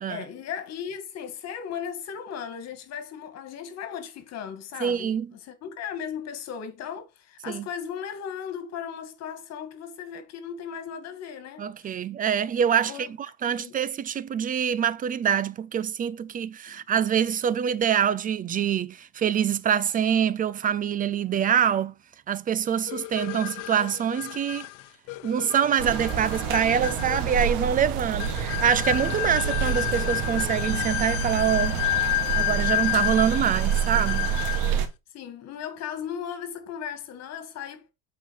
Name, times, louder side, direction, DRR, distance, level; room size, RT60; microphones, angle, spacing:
voice 1, 0.1-12.0 12.8-13.1 13.5-13.8 16.7-16.8 22.7-23.0 29.0-29.3 35.1-37.9, left 8 dB, 55° left, 2.2 m, -37 dB
voice 2, 4.8-5.3 7.5-7.7 11.6-13.1 13.4-21.9 22.3-24.7 25.2-34.3, right 8 dB, 25° right, 0.4 m, -25 dB
sound 1, 22.9-34.8, left 18 dB, 75° left, 0.8 m, -30 dB
sound 2, 25.8-34.9, right 8 dB, 85° right, 1.5 m, -28 dB
8.1 x 4.4 x 4.4 m
cardioid pair, 125°, 31 cm